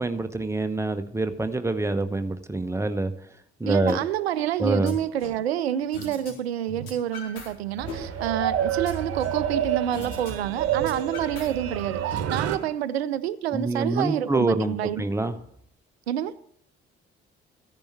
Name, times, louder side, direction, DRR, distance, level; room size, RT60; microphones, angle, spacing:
voice 1, 0.0-3.1 3.6-4.0 4.6-5.0 13.5-15.3, right 2 dB, 10° right, 1.1 m, -26 dB
voice 2, 3.7-15.0 16.1-16.3, right 11 dB, 80° right, 0.5 m, -28 dB
sound 1, 3.9-4.0 4.4-5.4 5.9-6.3 6.6-7.5 7.8-9.4 9.9-10.3 10.6-11.9, left 2 dB, 70° left, 4.3 m, -40 dB
sound 2, 7.6-12.6, right 9 dB, 50° right, 1.2 m, -28 dB
14.5 x 10.5 x 4.6 m
figure-of-eight pair, 45°, 32 cm